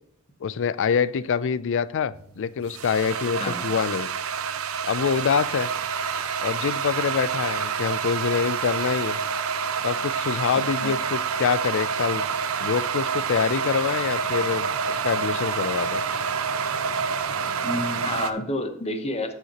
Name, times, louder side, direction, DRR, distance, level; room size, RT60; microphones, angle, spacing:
voice 1, 0.4-4.1 4.8-5.7 6.4-9.2 9.8-12.3 12.6-16.0, left 6 dB, 60° left, 18 dB, 0.4 m, -25 dB
sound 1, 2.1-18.3, right 6 dB, 75° right, 0.6 m, -28 dB
voice 2, 17.6-19.3, left 1 dB, 30° left, 8 dB, 0.9 m, -29 dB
13.5 x 5.7 x 2.9 m, 0.68 s
head